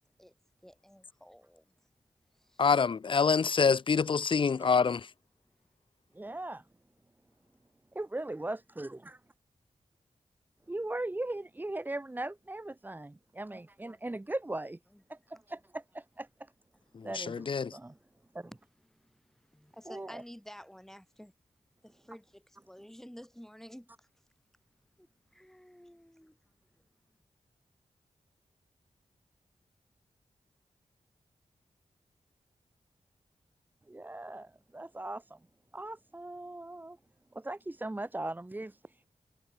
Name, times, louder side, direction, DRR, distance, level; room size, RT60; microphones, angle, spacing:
voice 1, 0.6-1.7 2.3-2.7 14.9-15.0 17.9-18.1 18.9-21.3 21.8-24.1 25.0-26.4, equal, 5° left, 2.2 m, -52 dB
voice 2, 2.6-5.1 16.9-17.7, left 5 dB, 40° left, 0.4 m, -26 dB
voice 3, 6.1-6.6 7.9-9.2 10.7-14.8 15.1-16.3 17.0-18.0 18.3-18.5 19.9-20.2 33.9-35.4 35.7-37.0 37.3-39.1, right 2 dB, 15° right, 0.7 m, -39 dB
wide cardioid pair, 110°, 13 cm